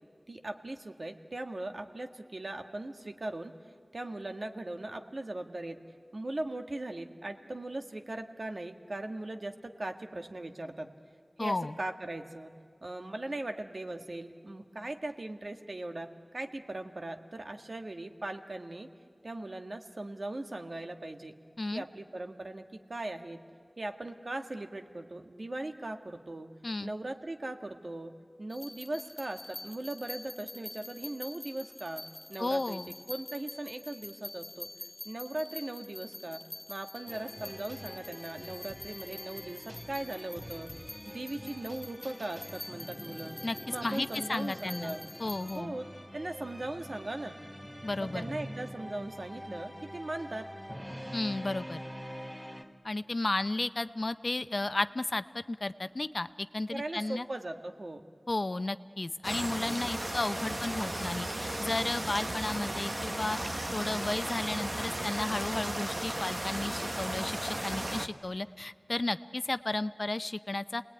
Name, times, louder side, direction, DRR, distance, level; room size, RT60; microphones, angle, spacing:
voice 1, 0.3-3.5 3.9-5.8 6.1-10.9 11.4-12.5 12.8-16.1 16.3-18.9 19.2-21.3 21.7-22.6 22.9-23.4 23.8-26.5 26.8-28.1 28.4-32.0 32.3-32.8 33.1-34.7 35.0-36.4 36.7-40.7 41.0-43.4 43.7-45.0 45.5-45.9 46.1-47.4 48.0-50.4 56.7-58.0, right 2 dB, 60° right, 5 dB, 1.6 m, -39 dB
voice 2, 11.4-11.7 21.6-21.8 26.6-26.9 32.4-32.9 43.4-43.6 43.8-44.9 45.2-45.8 47.8-48.2 51.1-51.8 52.8-57.3 58.3-63.4 63.7-70.8, left 2 dB, 55° left, 12 dB, 0.6 m, -33 dB
sound 1, 28.5-45.6, left 2 dB, 40° left, 1.5 m, -47 dB
sound 2, 37.1-52.6, equal, 15° right, 2.4 m, -45 dB
sound 3, 59.2-68.1, right 1 dB, 35° right, 1.2 m, -35 dB
29.0 x 19.5 x 9.6 m, 2.1 s
wide cardioid pair, 55°, 0 cm